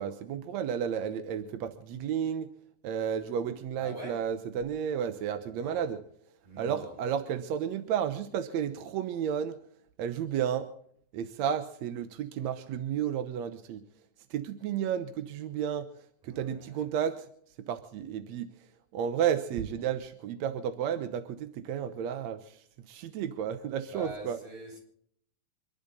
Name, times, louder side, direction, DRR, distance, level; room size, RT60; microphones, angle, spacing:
voice 1, 0.0-2.5 2.8-6.0 6.6-9.6 10.0-10.7 11.1-13.8 14.3-15.9 16.2-17.3 17.7-18.5 18.9-24.4, right 8 dB, 65° right, 1.9 m, -32 dB
voice 2, 3.8-4.2 5.4-6.0 6.4-7.0 16.2-16.9 23.9-24.8, right 1 dB, 50° right, 7.0 m, -44 dB
26.0 x 11.5 x 4.0 m
omnidirectional pair, 3.9 m